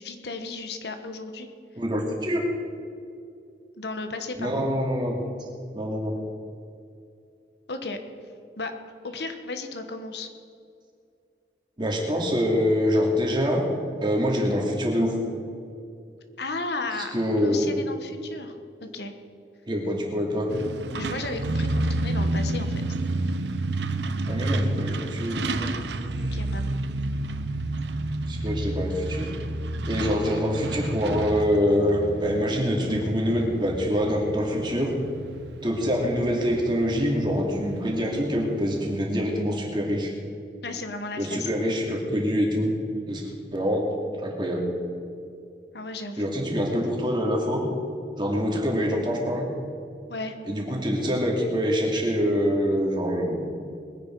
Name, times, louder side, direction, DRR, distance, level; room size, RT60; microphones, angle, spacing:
voice 1, 0.0-1.5 3.8-4.6 7.7-8.0 8.6-8.7 9.0-10.3 16.4-17.1 17.4-19.1 20.9-22.8 26.2-26.8 40.6-41.5 45.7-46.4 50.1-50.4, left 3 dB, 70° left, 7 dB, 1.2 m, -34 dB
voice 2, 1.8-2.4 4.4-5.5 5.7-6.1 11.8-13.6 14.0-15.2 17.1-17.6 19.7-20.5 24.3-25.7 28.3-29.3 29.8-35.0 35.6-40.1 41.2-42.8 43.1-43.9 44.2-44.7 46.2-47.7 48.2-49.5 50.4-53.4, equal, 25° right, -1 dB, 2.6 m, -25 dB
Truck, 20.5-39.0, right 2 dB, 80° right, 0.8 m, -30 dB
21.5 x 10.5 x 4.7 m, 2.5 s
head